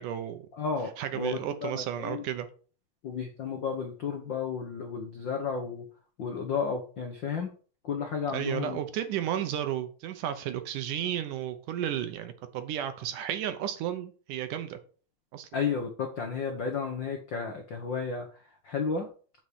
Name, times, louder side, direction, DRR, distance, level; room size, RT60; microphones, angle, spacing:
voice 1, 0.0-0.5 1.0-2.5 8.3-14.8 15.3-15.5, right 11 dB, 70° right, 9 dB, 2.2 m, -33 dB
voice 2, 0.6-0.9 1.1-2.2 3.0-5.9 6.2-7.5 7.8-8.8 15.5-19.1, left 5 dB, 75° left, 3 dB, 1.0 m, -32 dB
8.5 x 5.4 x 6.3 m, 0.39 s
omnidirectional pair, 4.2 m